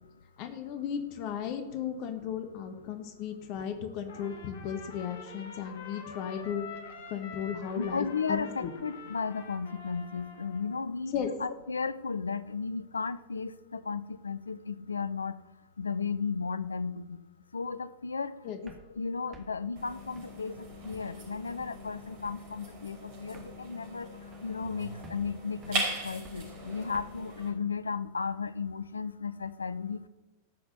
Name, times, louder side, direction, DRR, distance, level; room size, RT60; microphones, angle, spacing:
voice 1, 0.4-6.7 7.1-8.7 11.1-11.3 18.4-18.6, left 8 dB, 45° left, 8 dB, 1.4 m, -35 dB
Trumpet, 4.1-10.8, left 5 dB, 60° left, 1.6 m, -46 dB
voice 2, 7.8-11.1 11.4-15.4 15.8-30.1, left 5 dB, 75° left, 16 dB, 0.5 m, -35 dB
sound 1, 18.7-21.2 21.6-22.0 22.2-22.6 22.9-23.0 23.2-24.7 25.0-27.1, right 2 dB, 20° right, 2.2 m, -54 dB
sound 2, 19.8-27.5, right 2 dB, 45° right, 5.3 m, -40 dB
14.0 x 6.1 x 7.7 m, 1.1 s
figure-of-eight pair, 90°, 0 cm